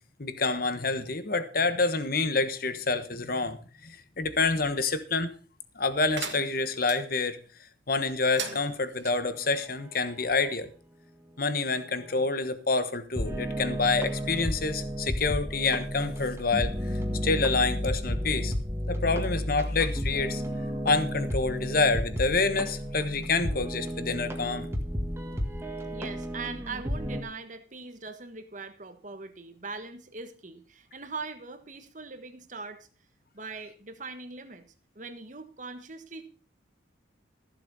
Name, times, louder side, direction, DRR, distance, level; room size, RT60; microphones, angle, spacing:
voice 1, 0.2-5.3 5.7-7.4 7.9-10.7 11.4-18.5 18.9-24.7, left 3 dB, 50° left, 10 dB, 1.3 m, -28 dB
sound 1, 6.1-7.0 8.2-9.1, right 7 dB, 70° right, 1.8 m, -38 dB
sound 2, 11.8-12.2 13.1-27.2, equal, 15° right, 1.7 m, -32 dB
voice 2, 25.9-32.9 33.3-34.6 34.9-36.3, right 4 dB, 40° right, 9 dB, 1.4 m, -41 dB
15.0 x 7.3 x 5.5 m, 0.39 s
head